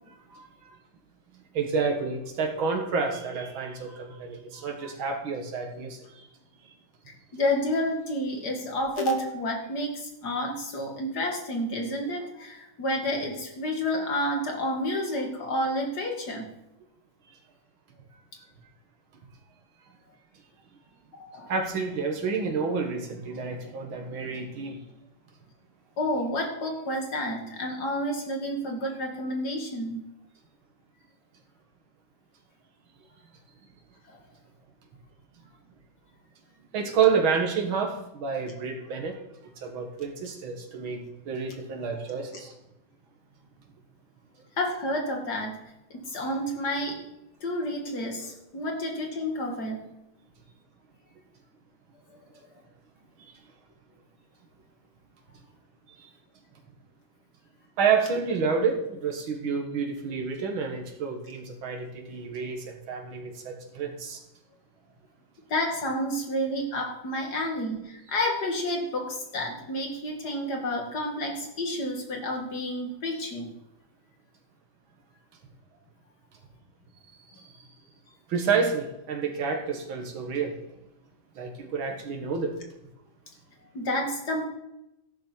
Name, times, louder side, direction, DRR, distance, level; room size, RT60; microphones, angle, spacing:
voice 1, 0.3-0.7 1.3-6.3 21.5-24.8 36.7-39.2 39.6-42.5 56.0-56.1 57.8-64.2 77.3-77.6 78.3-80.6 81.4-82.5, right 5 dB, 75° right, 2 dB, 2.4 m, -29 dB
voice 2, 7.3-16.5 21.1-21.5 26.0-30.0 34.1-34.2 44.6-45.6 45.9-47.0 47.4-49.8 65.5-73.5 83.7-84.4, left 1 dB, 50° left, 1 dB, 2.6 m, -30 dB
13.5 x 11.0 x 4.5 m, 0.90 s
omnidirectional pair, 2.2 m